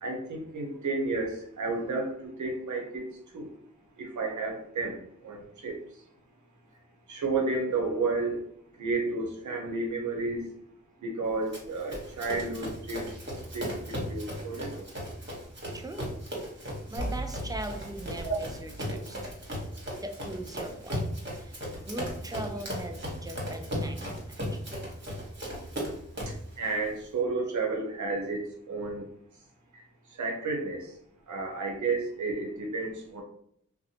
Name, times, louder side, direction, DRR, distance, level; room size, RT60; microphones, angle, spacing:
voice 1, 0.0-3.5 4.0-5.8 7.1-8.4 8.8-10.5 11.0-13.2 13.5-14.9 18.2-18.4 26.3-29.1 29.7-29.8 30.1-30.9 31.3-33.2, right 3 dB, 75° right, 1 dB, 0.7 m, -32 dB
Run, 11.5-26.5, equal, 40° right, 1.2 m, -37 dB
voice 2, 15.7-16.1 16.9-19.2 20.0-21.0 21.9-24.3, right 1 dB, 15° right, 5 dB, 0.5 m, -39 dB
sound 1, 17.0-19.8, right 1 dB, 80° left, 0.7 m, -39 dB
2.7 x 2.1 x 2.7 m, 0.69 s
cardioid pair, 40°, 30 cm